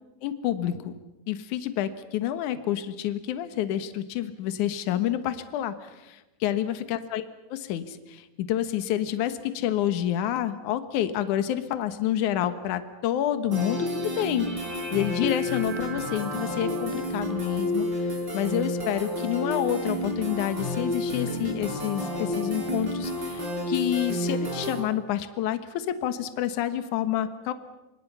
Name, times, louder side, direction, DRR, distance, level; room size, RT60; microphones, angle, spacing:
voice 1, 0.2-0.9 1.3-7.2 7.5-18.1 18.3-27.5, left 11 dB, 65° left, 10 dB, 2.4 m, -28 dB
sound 1, 13.5-24.8, left 1 dB, 25° right, 4.9 m, -30 dB
27.5 x 26.0 x 5.7 m, 1.0 s
omnidirectional pair, 4.4 m